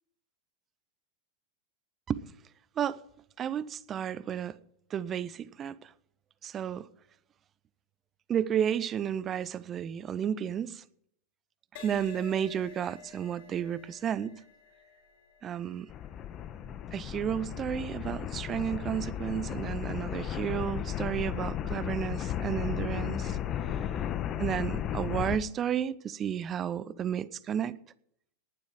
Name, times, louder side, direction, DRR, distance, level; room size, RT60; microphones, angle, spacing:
voice 1, 3.4-4.6 4.9-5.9 6.4-6.9 8.3-10.8 11.7-14.4 15.4-15.9 16.9-23.4 24.4-27.8, right 9 dB, 25° right, 0.7 m, -32 dB
Crash cymbal, 11.8-19.4 20.1-20.4, left 7 dB, 50° left, 4.5 m, -53 dB
sound 1, 15.9-25.4, left 10 dB, 30° left, 1.3 m, -34 dB
18.5 x 11.5 x 4.9 m
figure-of-eight pair, 90°, 0 cm